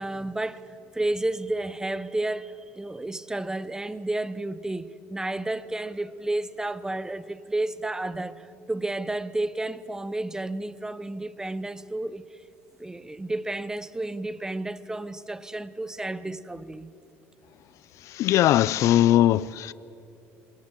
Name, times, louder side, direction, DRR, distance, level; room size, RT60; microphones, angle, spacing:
voice 1, 0.0-12.4 12.8-16.9, right 2 dB, 10° right, 0.9 m, -31 dB
voice 2, 18.1-19.7, left 13 dB, 60° left, 0.5 m, -20 dB
27.5 x 20.0 x 7.5 m
supercardioid pair, 85°, 6 cm